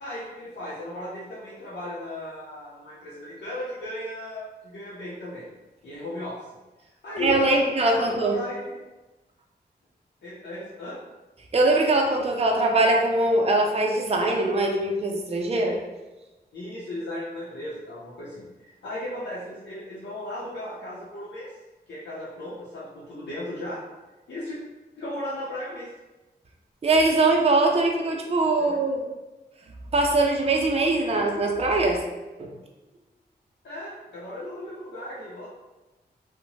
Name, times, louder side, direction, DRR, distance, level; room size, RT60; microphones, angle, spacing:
voice 1, 0.0-5.5 5.8-6.4 7.0-8.6 10.2-11.0 16.5-21.5 21.9-23.8 24.3-24.6 25.0-25.9 28.6-28.8 33.6-35.5, left 1 dB, 80° left, -9 dB, 0.6 m, -36 dB
voice 2, 7.2-8.4 11.5-15.8 26.8-29.0 29.9-32.0 32.4-32.5, right 2 dB, 35° right, 1 dB, 0.4 m, -22 dB
2.8 x 2.1 x 2.7 m, 1.1 s
cardioid pair, 60°, 18 cm